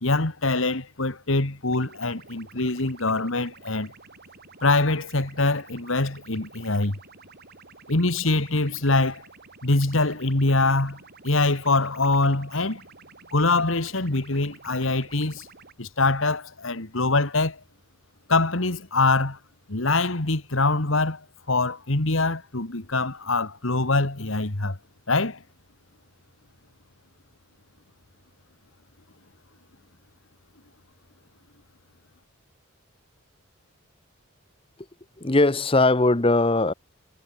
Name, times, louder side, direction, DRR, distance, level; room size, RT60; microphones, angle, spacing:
voice 1, 0.0-3.9 4.6-7.0 7.9-9.2 9.6-12.8 13.3-15.5 15.8-17.6 18.3-19.4 19.7-24.8 25.1-25.4, left 2 dB, 70° left, 2.1 m, -24 dB
sound 1, 1.7-15.7, right 4 dB, 50° right, 7.7 m, -50 dB
voice 2, 35.2-36.7, left 2 dB, 25° left, 1.0 m, -20 dB
head